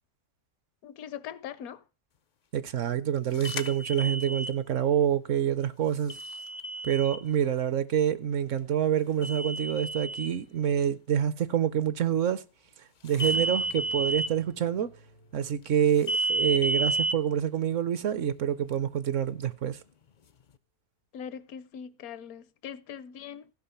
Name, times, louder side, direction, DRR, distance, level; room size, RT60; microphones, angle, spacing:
voice 1, 0.8-1.8 21.1-23.5, left 8 dB, 80° left, 1.2 m, -41 dB
voice 2, 2.5-6.2 6.8-12.4 13.0-14.9 15.3-19.8, right 9 dB, 65° right, 1.0 m, -27 dB
sound 1, 3.4-4.5 6.1-7.2 9.2-10.3 13.1-14.3 16.1-17.1, right 2 dB, 60° left, 0.4 m, -30 dB
sound 2, 13.2-18.3, right 3 dB, 85° right, 4.5 m, -52 dB
15.5 x 5.3 x 5.6 m
omnidirectional pair, 1.5 m